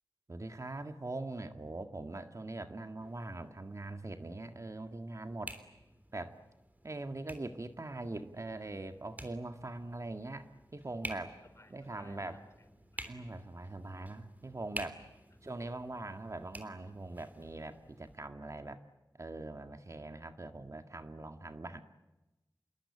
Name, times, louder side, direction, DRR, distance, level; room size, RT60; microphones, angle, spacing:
voice 1, 0.3-5.6 6.1-6.4 6.8-11.4 11.7-12.4 13.1-15.0 15.4-18.8 19.2-21.8, right 2 dB, 45° right, 7 dB, 1.8 m, -42 dB
sound 1, 3.0-18.2, right 1 dB, 25° right, 3.3 m, -51 dB
voice 2, 11.2-13.4, left 2 dB, 40° left, 8 dB, 4.9 m, -60 dB
28.0 x 21.5 x 9.7 m, 1.0 s
wide cardioid pair, 65°, 7 cm